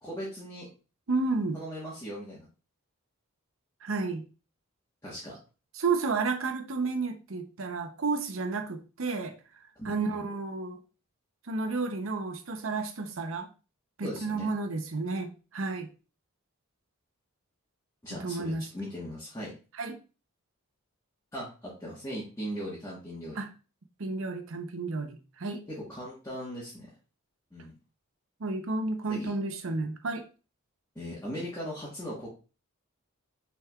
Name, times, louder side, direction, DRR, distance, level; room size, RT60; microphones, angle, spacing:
voice 1, 0.0-0.7 1.5-2.5 5.0-5.4 9.8-10.2 14.0-14.5 18.0-19.5 21.3-23.4 25.7-26.9 27.5-27.7 29.1-29.3 30.9-32.3, equal, 15° left, -8 dB, 1.3 m, -39 dB
voice 2, 1.1-1.6 3.8-4.2 5.8-9.3 9.8-10.8 11.5-13.5 14.0-15.9 18.2-18.7 19.8-20.0 23.4-23.5 24.0-25.6 28.4-30.3, right 3 dB, 65° right, 7 dB, 0.7 m, -31 dB
6.0 x 3.6 x 2.3 m, 0.33 s
head